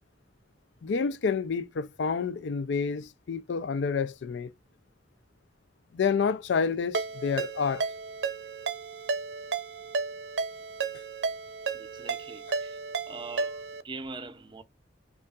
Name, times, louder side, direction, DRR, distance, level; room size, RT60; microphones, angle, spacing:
voice 1, 0.8-4.5 5.9-7.8, left 5 dB, 80° left, 0.4 m, -29 dB
Ringtone, 6.9-13.8, right 4 dB, 75° right, 0.6 m, -33 dB
voice 2, 11.7-12.8 13.1-14.6, right 3 dB, 25° right, 0.5 m, -42 dB
5.3 x 2.4 x 2.3 m
head